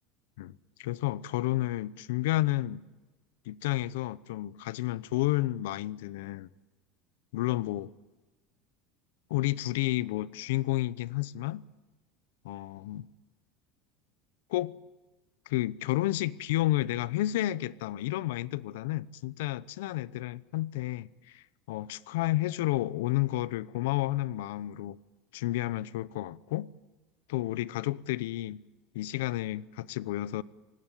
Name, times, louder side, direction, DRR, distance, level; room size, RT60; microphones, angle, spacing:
voice 1, 0.8-2.8 3.5-6.5 7.3-7.9 9.3-11.6 12.4-13.0 14.5-14.7 15.5-25.0 25.3-26.7 27.3-28.6 28.9-30.4, left 16 dB, 85° left, 0.7 m, -31 dB
25.5 x 18.5 x 9.2 m
supercardioid pair, 155°, 0 cm